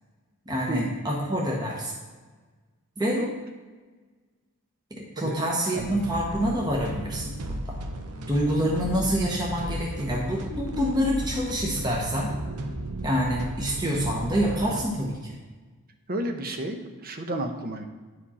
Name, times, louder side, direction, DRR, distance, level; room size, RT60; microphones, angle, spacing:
voice 1, 0.5-1.9 3.0-3.2 5.0-7.4 7.7-7.8 8.3-12.3 13.0-15.4, equal, 20° right, -3 dB, 1.0 m, -27 dB
voice 2, 5.6-6.0 8.8-9.0 16.1-17.8, right 1 dB, 40° right, 5 dB, 0.8 m, -32 dB
sound 1, 5.8-14.9, right 1 dB, 80° right, 0.7 m, -35 dB
10.0 x 5.1 x 4.2 m, 1.3 s
head